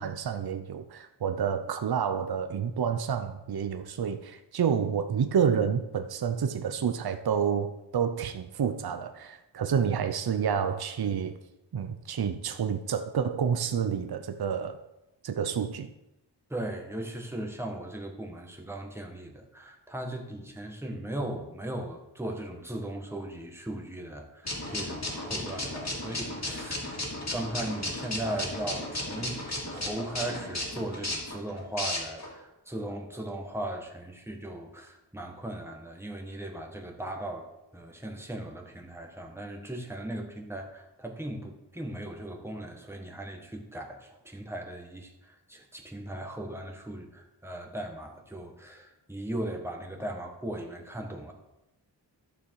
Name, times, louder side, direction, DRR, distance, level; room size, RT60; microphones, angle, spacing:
voice 1, 0.0-11.4 11.7-14.8 15.2-15.9, right 7 dB, 55° right, 8 dB, 0.7 m, -29 dB
voice 2, 16.5-51.3, right 1 dB, 5° right, 1 dB, 1.6 m, -38 dB
sound 1, 24.4-32.3, left 1 dB, 35° left, 2.6 m, -35 dB
11.5 x 6.8 x 4.8 m, 0.94 s
wide cardioid pair, 85°, 44 cm